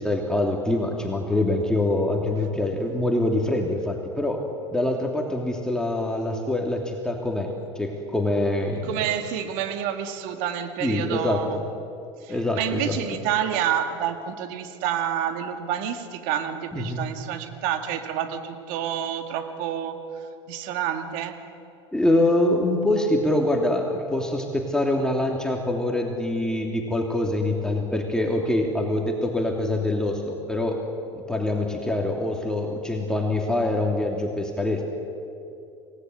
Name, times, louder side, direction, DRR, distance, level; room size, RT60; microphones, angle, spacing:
voice 1, 0.0-4.4 4.7-7.5 7.7-8.9 10.8-11.6 12.3-13.2 16.7-17.0 21.9-30.8 31.1-34.8, left 1 dB, 5° left, 1 dB, 2.8 m, -25 dB
voice 2, 8.8-11.7 12.2-20.0 20.5-21.4, right 10 dB, 60° right, 7 dB, 2.3 m, -28 dB
28.0 x 18.0 x 8.0 m, 2.7 s
figure-of-eight pair, 75°, 16 cm